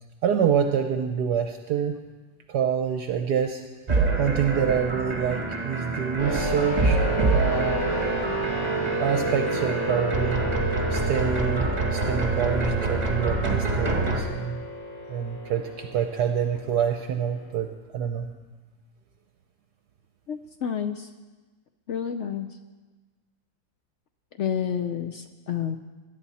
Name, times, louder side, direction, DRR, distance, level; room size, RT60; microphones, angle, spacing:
voice 1, 0.2-2.0 2.5-3.6 4.2-7.0 7.3-7.9 9.0-14.6 15.1-18.3, right 8 dB, 70° right, 5 dB, 1.2 m, -27 dB
sound 1, 3.9-14.2, right 3 dB, 25° right, 1.8 m, -27 dB
sound 2, 6.2-17.5, right 1 dB, 50° left, 2.9 m, -31 dB
voice 2, 20.3-21.1 21.9-22.5 24.4-25.8, left 8 dB, 70° left, 7 dB, 0.6 m, -29 dB
21.5 x 10.5 x 4.2 m, 1.3 s
omnidirectional pair, 2.0 m